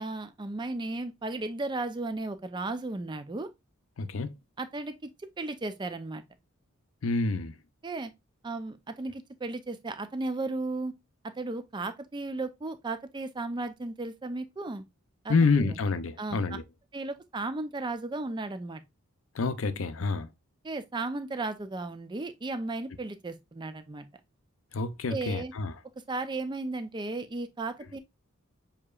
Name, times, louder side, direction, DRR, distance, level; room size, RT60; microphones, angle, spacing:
voice 1, 0.0-3.5 4.6-4.9 5.4-6.2 7.8-8.1 8.4-10.9 11.2-14.8 15.2-15.8 16.2-16.4 16.9-18.8 20.6-24.1 25.1-25.5 26.1-28.0, right 2 dB, 20° right, 0.4 m, -35 dB
voice 2, 4.0-4.3 7.0-7.6 15.3-16.6 19.3-20.3 24.7-25.7, left 4 dB, 65° left, 0.5 m, -27 dB
6.6 x 2.9 x 2.4 m
head